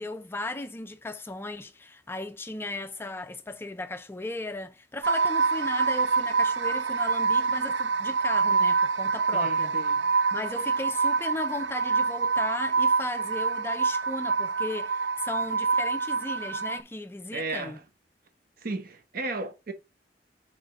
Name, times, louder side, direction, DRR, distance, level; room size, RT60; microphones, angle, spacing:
voice 1, 0.0-9.7 10.3-17.8, left 2 dB, 15° left, 0.3 m, -36 dB
sound 1, 5.0-16.8, right 5 dB, 85° right, 0.5 m, -26 dB
voice 2, 9.3-10.0 17.3-17.8 18.6-19.7, right 2 dB, 55° right, 1.0 m, -34 dB
4.9 x 4.3 x 5.2 m
head